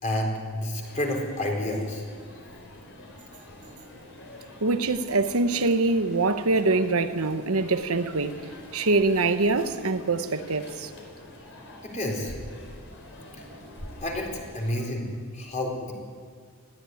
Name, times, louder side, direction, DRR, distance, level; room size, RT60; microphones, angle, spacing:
voice 1, 0.0-2.0 11.8-12.3 14.0-14.3 14.5-15.1 15.3-15.9, left 1 dB, 30° left, 4.1 m, -29 dB
sound 1, 0.8-14.9, left 1 dB, 55° left, 4.8 m, -46 dB
voice 2, 4.6-8.4 8.7-10.9, right 3 dB, 70° right, 1.1 m, -24 dB
20.0 x 15.5 x 9.4 m
head